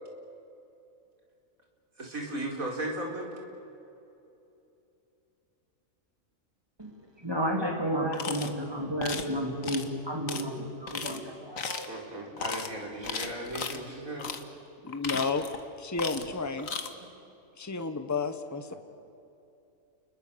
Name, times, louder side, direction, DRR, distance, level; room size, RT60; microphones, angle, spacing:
voice 1, 2.0-3.3 11.9-14.3 16.9-17.1 18.7-18.8, right 1 dB, 85° right, 0 dB, 4.8 m, -36 dB
voice 2, 7.2-11.9, equal, 15° right, 1 dB, 3.2 m, -32 dB
sound 1, 8.1-8.5 9.0-9.3 9.6-9.9 10.3-10.4 10.9-11.2 11.6-11.9 12.4-12.7 13.0-13.8 14.2-14.4 14.9-15.6 16.0-16.3 16.6-16.9, left 5 dB, 75° left, 1.8 m, -35 dB
voice 3, 14.8-15.5 15.8-16.7 17.6-18.7, left 4 dB, 15° left, 8 dB, 1.1 m, -31 dB
30.0 x 21.5 x 7.0 m, 2.8 s
omnidirectional pair, 1.4 m